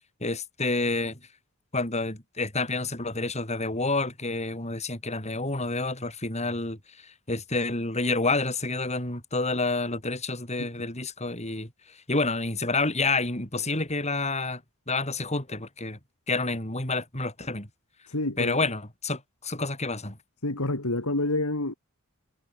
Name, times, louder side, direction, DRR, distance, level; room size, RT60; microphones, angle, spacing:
voice 1, 0.2-1.2 1.7-6.8 7.3-11.7 12.1-14.6 14.9-16.0 16.3-17.7 18.4-20.2, left 3 dB, 30° left, 6.7 m, -29 dB
voice 2, 18.1-18.6 20.4-21.7, left 2 dB, 85° left, 3.2 m, -28 dB
head